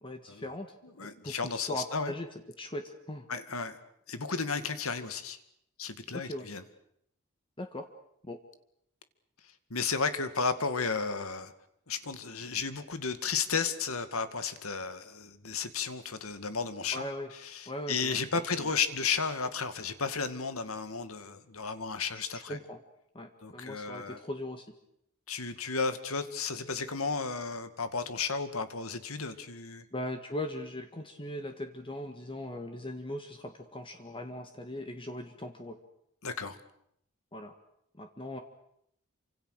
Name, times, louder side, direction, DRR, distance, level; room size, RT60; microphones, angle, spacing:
voice 1, 0.0-0.7 1.0-2.3 2.6-3.3 6.1-6.5 7.6-7.8 8.2-8.4 16.9-17.3 17.7-18.2 18.6-18.7 22.5-22.8 23.1-24.6 29.9-35.8 37.3-37.5 38.0-38.4, left 1 dB, 25° left, 6 dB, 1.7 m, -39 dB
voice 2, 0.8-2.1 3.3-3.8 4.1-5.4 5.8-6.6 9.7-11.5 11.9-17.0 17.3-22.6 23.4-24.3 25.3-29.9 36.2-36.6, left 5 dB, 80° left, 10 dB, 2.1 m, -33 dB
28.5 x 26.0 x 6.7 m, 0.73 s
head